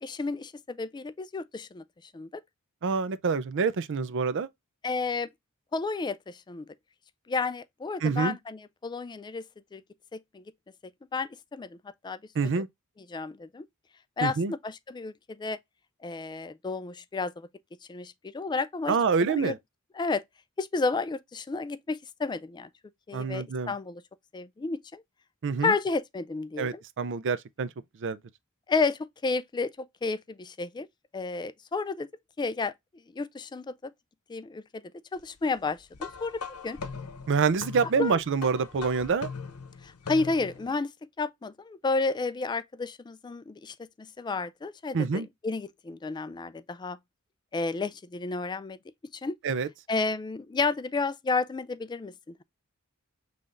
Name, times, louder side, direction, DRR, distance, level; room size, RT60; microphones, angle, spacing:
voice 1, 0.0-1.8 2.1-2.4 4.8-5.3 5.7-6.7 7.3-9.5 9.7-9.8 10.1-10.4 11.1-11.8 12.0-12.2 12.6-12.7 13.1-13.6 14.2-15.6 16.0-17.5 17.9-19.5 19.9-20.2 20.6-22.7 23.1-24.0 24.3-25.0 25.6-26.8 28.7-30.9 31.1-32.1 32.4-32.7 33.1-33.9 34.3-34.8 35.1-36.8 38.0-38.2 39.8-40.9 41.2-47.0 47.5-48.8 49.1-49.4 49.9-52.4, left 4 dB, 20° left, 0.3 m, -31 dB
voice 2, 2.8-4.5 8.0-8.4 12.4-12.7 14.2-14.5 18.9-19.6 23.1-23.7 25.4-25.7 26.6-27.7 28.0-28.2 37.3-39.3 44.9-45.3 49.4-49.7, right 5 dB, 55° right, 0.5 m, -26 dB
sound 1, 35.9-40.7, left 5 dB, 85° left, 0.8 m, -40 dB
5.5 x 3.4 x 2.5 m
head